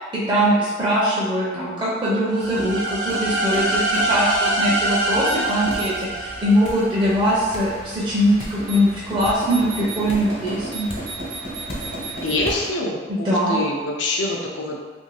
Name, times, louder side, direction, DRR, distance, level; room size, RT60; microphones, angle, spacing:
voice 1, 0.0-10.9 13.1-13.6, equal, 25° right, -8 dB, 0.5 m, -21 dB
sound 1, 2.3-7.1, right 1 dB, 80° right, 0.6 m, -24 dB
sound 2, 2.4-12.7, right 2 dB, 60° right, 1.0 m, -35 dB
sound 3, 5.7-5.9 6.6-6.9 7.5-7.7 8.4-8.6 9.2-9.4 10.1-10.3 10.9-11.1 11.7-12.0 12.4-12.6, left 1 dB, 30° left, 0.5 m, -35 dB
voice 2, 12.2-14.8, left 2 dB, 90° left, 0 dB, 0.5 m, -25 dB
2.6 x 2.5 x 3.1 m, 1.4 s
head